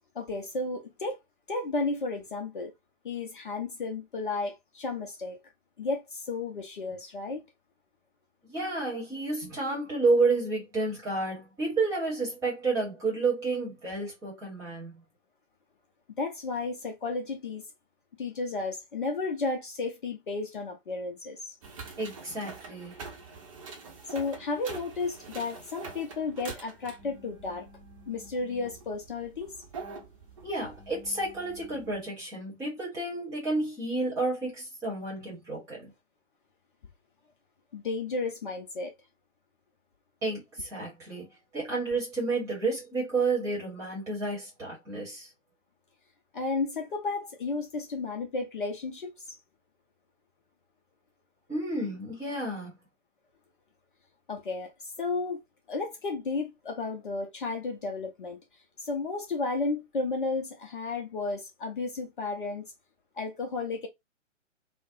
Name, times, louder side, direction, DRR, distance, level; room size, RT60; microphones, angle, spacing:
voice 1, 0.1-1.2 1.5-2.7 3.0-5.4 5.8-7.4 16.2-17.6 18.2-21.6 24.1-27.7 28.1-29.5 37.7-38.9 46.3-49.1 54.3-55.4 55.7-58.4 58.8-62.6 63.2-63.9, left 3 dB, 40° left, 0.6 m, -33 dB
voice 2, 8.4-15.0 22.0-23.0 30.4-35.9 40.2-41.3 41.5-45.3 51.5-52.7, right 3 dB, 10° right, 1.0 m, -30 dB
sound 1, 21.6-32.1, right 4 dB, 25° right, 0.7 m, -45 dB
3.3 x 2.0 x 2.5 m
figure-of-eight pair, 135°, 38 cm